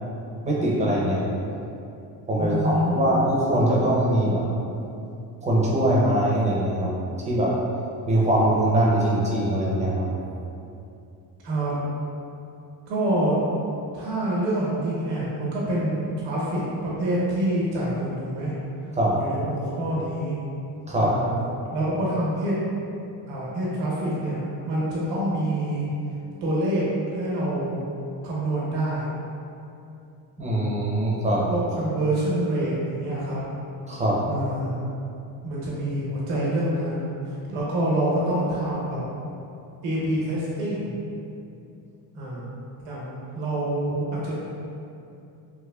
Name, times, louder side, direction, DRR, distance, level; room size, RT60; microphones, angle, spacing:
voice 1, 0.4-1.3 2.3-4.4 5.4-6.9 7.3-7.5 8.1-10.1 19.0-19.2 20.9-21.2 30.4-31.5 33.9-34.2, right 1 dB, 15° right, -5 dB, 0.6 m, -22 dB
voice 2, 2.4-3.0 11.4-11.7 12.9-13.4 13.9-18.5 19.1-20.4 21.0-21.4 21.7-22.5 23.3-25.9 26.4-26.8 27.1-27.8 28.2-29.1 31.5-33.4 34.3-34.8 35.4-39.0 39.8-41.0 42.1-42.4 42.8-44.4, right 1 dB, 90° right, -6 dB, 1.1 m, -26 dB
3.4 x 3.0 x 2.3 m, 2.7 s
cardioid pair, 130°, 42 cm